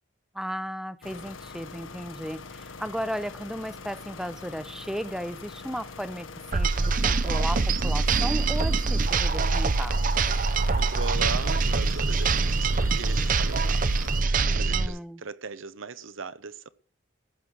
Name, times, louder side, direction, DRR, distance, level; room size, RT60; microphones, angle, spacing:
voice 1, 0.3-10.3 14.7-15.2, equal, ahead, 0.6 m, -35 dB
sound 1, 1.0-14.2, left 4 dB, 80° left, 1.2 m, -43 dB
sound 2, 6.5-14.9, right 3 dB, 40° right, 0.6 m, -24 dB
voice 2, 10.8-16.7, right 4 dB, 80° right, 0.9 m, -38 dB
14.5 x 6.5 x 7.7 m
head